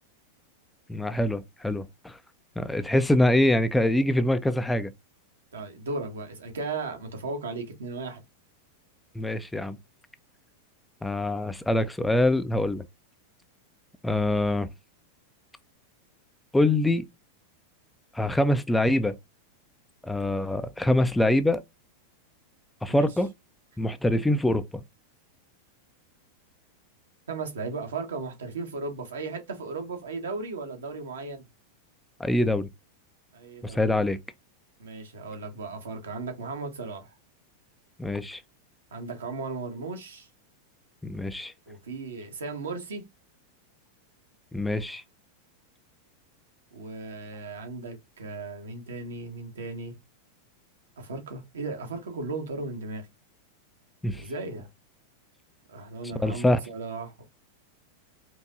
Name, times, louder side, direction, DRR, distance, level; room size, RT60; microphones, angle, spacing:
voice 1, 0.9-2.2 2.6-4.9 9.2-9.8 11.0-12.8 14.0-14.7 16.5-17.0 18.1-19.2 20.0-21.6 22.8-23.3 23.8-24.8 32.2-32.7 33.6-34.2 38.0-38.4 41.0-41.5 44.5-45.0 54.0-54.2 56.2-56.6, left 1 dB, 5° left, 0.4 m, -24 dB
voice 2, 5.5-8.2 22.9-23.1 27.3-31.5 33.3-33.9 34.8-37.1 38.9-40.3 41.7-43.0 46.7-49.9 51.0-53.1 54.1-54.7 55.7-57.2, right 3 dB, 65° right, 1.1 m, -36 dB
4.5 x 2.6 x 2.5 m
figure-of-eight pair, 90°, 0 cm